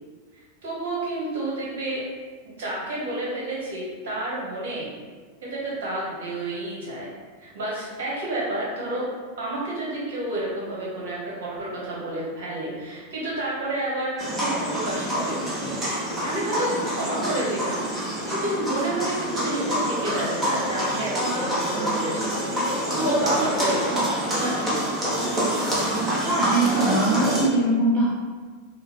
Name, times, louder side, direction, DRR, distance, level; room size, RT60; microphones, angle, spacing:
voice 1, 0.6-2.0 2.6-4.9 5.4-7.1 7.4-9.0 9.4-15.4 16.2-17.8 18.2-22.4 22.7-24.9, right 1 dB, 60° right, -5 dB, 1.4 m, -30 dB
sound 1, 14.2-27.5, equal, 15° right, 1.1 m, -26 dB
voice 2, 26.2-28.1, right 2 dB, 35° right, -6 dB, 0.6 m, -21 dB
5.5 x 2.3 x 3.1 m, 1.5 s
figure-of-eight pair, 90°, 0 cm